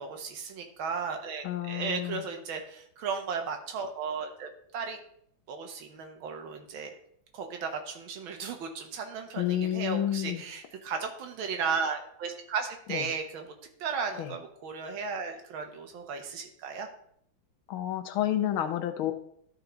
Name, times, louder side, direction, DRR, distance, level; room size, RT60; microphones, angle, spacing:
voice 1, 0.0-5.0 5.5-6.9 7.3-13.5 13.8-16.9, right 5 dB, 80° right, 4 dB, 1.9 m, -35 dB
voice 2, 1.4-2.3 9.3-10.4 12.9-13.0 14.2-14.3 17.7-19.1, left 12 dB, 85° left, 8 dB, 1.6 m, -30 dB
12.5 x 4.7 x 3.9 m, 0.69 s
omnidirectional pair, 2.2 m